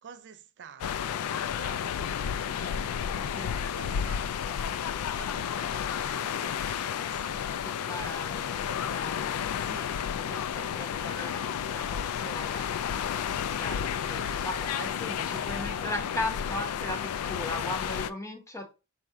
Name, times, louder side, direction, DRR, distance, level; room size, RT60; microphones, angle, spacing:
voice 1, 0.0-2.9 3.5-4.6 5.1-7.7 9.6-10.0, right 6 dB, 55° right, 0.4 m, -50 dB
sound 1, 0.8-18.1, left 8 dB, 80° left, 0.3 m, -32 dB
voice 2, 7.6-9.5 10.3-12.7 13.1-13.8 14.1-18.7, left 1 dB, 15° left, 0.9 m, -38 dB
sound 2, 12.6-16.5, right 5 dB, 30° right, 0.9 m, -51 dB
4.2 x 2.5 x 4.6 m
head